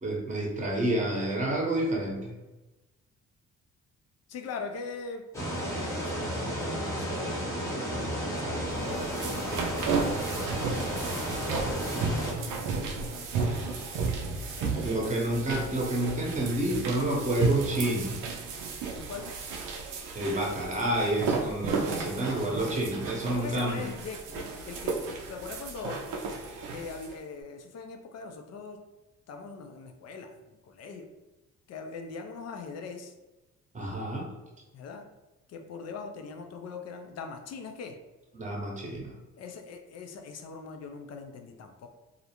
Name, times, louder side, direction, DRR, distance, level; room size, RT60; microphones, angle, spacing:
voice 1, 0.0-2.3 14.8-18.2 20.1-23.8 33.7-34.3 38.3-39.1, right 1 dB, 25° right, -1 dB, 0.8 m, -29 dB
voice 2, 4.3-5.2 5.5-9.6 11.1-12.0 12.4-15.2 18.8-19.3 23.3-26.0 26.7-28.8 29.3-31.1 31.7-33.1 34.7-35.0 35.5-38.0 39.4-41.9, left 4 dB, 60° left, 5 dB, 0.4 m, -42 dB
sound 1, 5.3-12.3, right 1 dB, 10° left, 0.8 m, -32 dB
sound 2, 8.7-27.1, right 4 dB, 85° right, 0.5 m, -33 dB
2.4 x 2.0 x 2.8 m, 1.1 s
cardioid pair, 90°, 30 cm